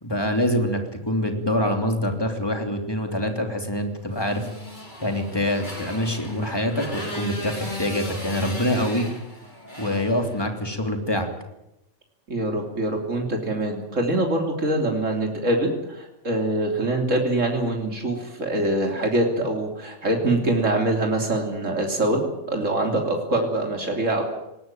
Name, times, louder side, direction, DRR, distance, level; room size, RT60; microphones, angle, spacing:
voice 1, 0.0-4.5 5.0-9.1 9.8-11.3, left 1 dB, 20° left, 4 dB, 3.1 m, -25 dB
Motorcycle, 4.1-10.8, left 1 dB, 35° left, 4.8 m, -37 dB
voice 2, 12.3-22.2 22.5-24.2, right 1 dB, 75° right, 2 dB, 3.7 m, -24 dB
20.5 x 18.5 x 9.1 m, 0.88 s
omnidirectional pair, 1.3 m